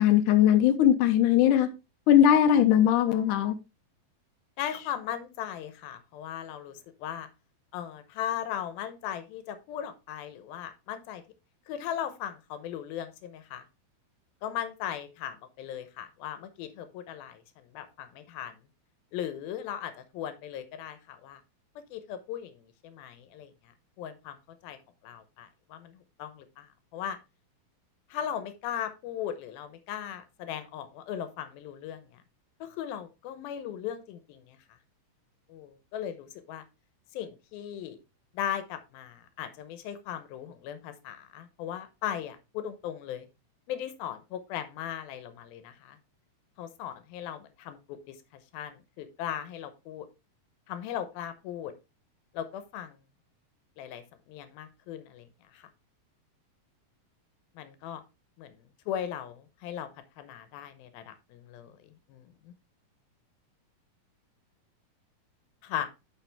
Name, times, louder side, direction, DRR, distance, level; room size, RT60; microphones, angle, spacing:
voice 1, 0.0-1.7 2.1-3.6, left 10 dB, 70° left, 2.3 m, -20 dB
voice 2, 4.6-7.3 7.7-11.2 11.7-13.6 14.4-18.5 19.1-21.4 21.9-24.4 24.6-24.8 25.0-27.2 28.1-32.2 32.6-34.6 35.5-36.6 37.1-38.0 38.3-43.3 43.7-46.0 46.6-47.8 48.1-48.2 48.5-50.1 50.7-51.7 52.3-53.0 53.8-55.3 55.5-55.7 57.6-58.0 58.4-58.5 58.9-59.9 60.2-62.5 65.6-65.9, left 10 dB, 90° left, 2.7 m, -38 dB
10.5 x 4.8 x 3.4 m
omnidirectional pair, 4.1 m